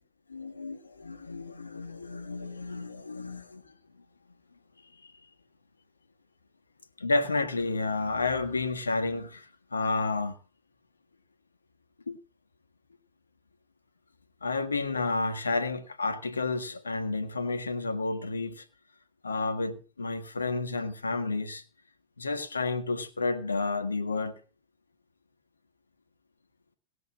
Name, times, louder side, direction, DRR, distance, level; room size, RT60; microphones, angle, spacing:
voice 1, 0.3-3.6 7.0-10.4 12.1-12.2 14.4-18.6 19.2-21.6 22.2-24.4, left 3 dB, 90° left, 1.6 m, -31 dB
18.0 x 7.6 x 7.3 m
hypercardioid pair, 105°, 0 cm